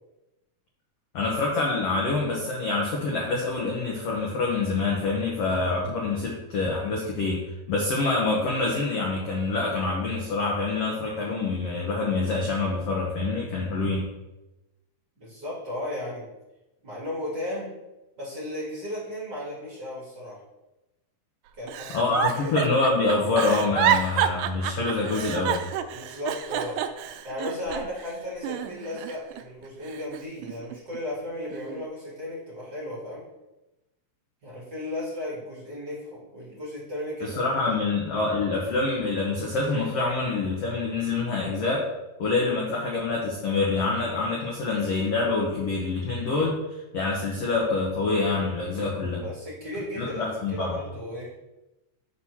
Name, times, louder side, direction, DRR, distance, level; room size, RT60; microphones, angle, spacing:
voice 1, 1.1-14.1 21.9-25.6 37.2-41.8 42.2-49.2 50.0-50.7, left 3 dB, 75° left, -2 dB, 1.4 m, -26 dB
voice 2, 15.2-16.3 16.8-17.7 18.2-20.4 21.6-22.6 25.9-26.8 27.2-33.3 34.4-37.7 49.2-51.3, left 1 dB, 35° right, -7 dB, 2.2 m, -35 dB
Giggle, 21.7-28.1 28.4-29.4 29.9-31.0 31.5-31.8, right 10 dB, 85° right, 1.9 m, -29 dB
6.2 x 4.3 x 6.1 m, 1.0 s
omnidirectional pair, 4.4 m